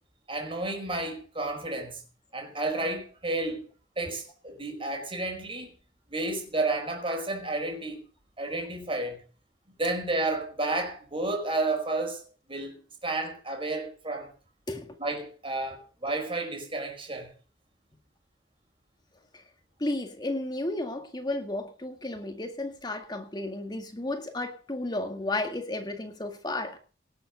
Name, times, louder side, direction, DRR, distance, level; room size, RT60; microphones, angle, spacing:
voice 1, 0.3-2.0 2.3-3.7 4.0-5.7 6.1-8.0 8.4-9.2 9.8-14.3 15.0-17.3, right 2 dB, 30° right, 4.9 m, -31 dB
voice 2, 19.8-26.8, left 2 dB, 25° left, 1.9 m, -33 dB
18.0 x 7.8 x 6.7 m
head